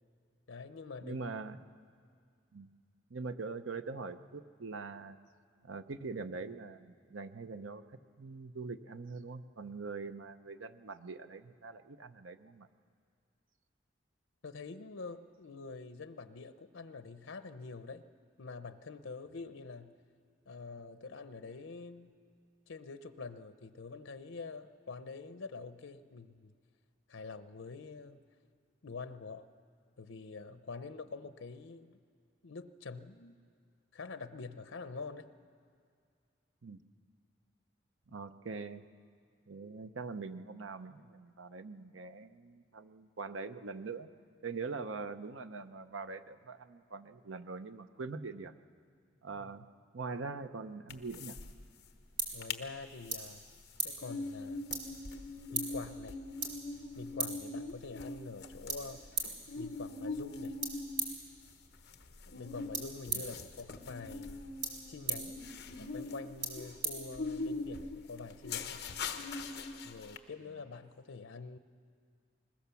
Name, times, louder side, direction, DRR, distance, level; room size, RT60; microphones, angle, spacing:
voice 1, 0.5-1.2 14.4-18.0 18.4-20.0 20.5-22.1 22.7-26.5 27.1-28.2 28.8-29.5 30.0-32.0 32.4-33.3 33.9-35.3 49.4-49.5 52.3-53.4 53.8-54.6 55.5-56.2 57.0-59.0 59.6-60.6 62.3-65.4 65.8-68.9 69.8-71.6, left 4 dB, 85° left, 11 dB, 0.7 m, -46 dB
voice 2, 1.0-1.6 2.5-2.7 3.1-5.2 5.6-7.8 8.2-12.7 36.6-36.8 38.1-38.8 39.5-44.1 44.4-48.5 49.2-49.7 49.9-51.4, right 4 dB, 85° right, 10 dB, 0.8 m, -43 dB
sound 1, 50.9-51.5 51.8-51.9 52.2-52.6 53.0-70.2, left 3 dB, 55° left, 1.1 m, -42 dB
sound 2, 51.4-67.7, right 3 dB, 60° right, 4.2 m, -43 dB
21.0 x 20.5 x 7.0 m, 2.2 s
head